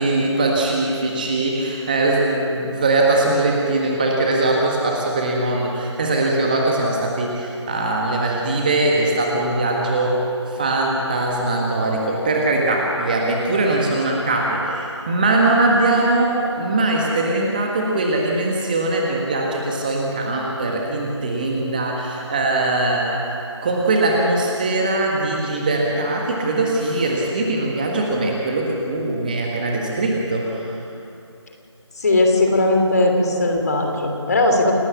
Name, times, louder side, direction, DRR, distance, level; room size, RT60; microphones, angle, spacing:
voice 1, 0.0-23.3 23.6-30.8, right 2 dB, 15° right, -1 dB, 1.5 m, -21 dB
voice 2, 32.0-34.7, left 2 dB, 35° left, 3 dB, 3.0 m, -18 dB
28.5 x 12.5 x 8.3 m, 2.7 s
figure-of-eight pair, 165°, 15 cm